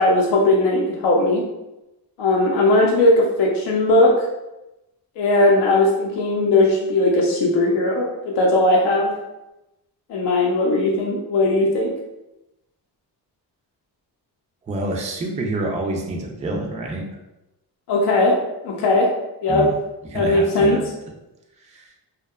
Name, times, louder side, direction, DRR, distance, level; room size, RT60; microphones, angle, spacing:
voice 1, 0.0-1.4 2.2-4.1 5.2-9.1 10.1-11.9 17.9-18.4 18.6-19.1 19.4-19.7 20.1-20.8, left 2 dB, 70° left, -2 dB, 0.6 m, -18 dB
voice 2, 14.7-17.1 19.5-19.7 20.1-20.8 21.6-21.9, right 2 dB, 20° right, 0 dB, 0.3 m, -27 dB
2.6 x 2.2 x 2.3 m, 0.95 s
cardioid pair, 110°, 42 cm